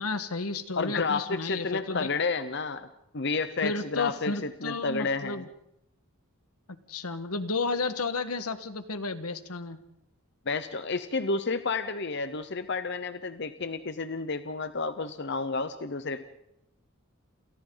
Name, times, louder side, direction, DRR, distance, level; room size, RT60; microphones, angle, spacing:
voice 1, 0.0-2.1 3.6-5.5 6.9-9.8, left 3 dB, 90° left, 10 dB, 1.6 m, -32 dB
voice 2, 0.8-2.9 3.1-5.5 10.5-16.2, left 4 dB, 50° left, 11 dB, 0.8 m, -31 dB
29.0 x 28.5 x 4.0 m, 0.82 s
head